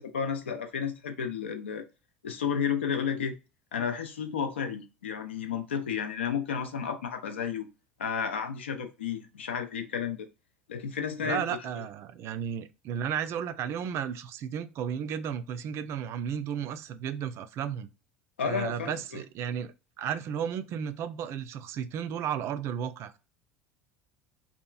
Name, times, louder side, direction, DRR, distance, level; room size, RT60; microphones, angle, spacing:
voice 1, 0.0-1.8 2.2-3.4 3.7-7.7 8.0-10.3 10.7-11.5 18.4-19.2, left 7 dB, 80° left, 0.4 m, -32 dB
voice 2, 11.2-17.9 18.4-23.2, right 8 dB, 50° right, 0.3 m, -33 dB
2.8 x 2.3 x 2.3 m
hypercardioid pair, 70°, 6 cm